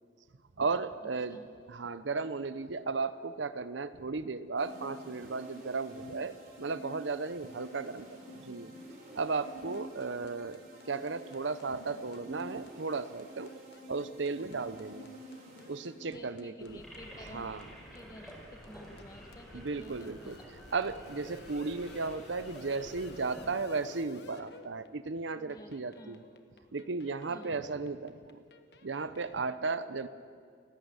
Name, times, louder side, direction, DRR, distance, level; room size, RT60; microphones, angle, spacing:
voice 1, 0.6-1.4 1.7-8.7 9.1-10.6 10.9-13.5 13.9-15.1 15.7-16.8 17.3-17.6 19.5-20.4 20.7-26.2 26.7-28.4 28.8-30.1, right 4 dB, 80° right, 13 dB, 0.8 m, -35 dB
sound 1, 4.6-16.3, equal, 50° right, 4.5 m, -49 dB
sound 2, 9.7-29.5, left 3 dB, 60° left, 1.2 m, -56 dB
voice 2, 16.1-17.5 17.9-20.5 25.3-26.3 27.3-27.6, left 1 dB, 20° left, 5 dB, 1.6 m, -52 dB
sound 3, 16.6-23.5, equal, ahead, 5.3 m, -50 dB
29.0 x 12.0 x 8.2 m, 2.2 s
head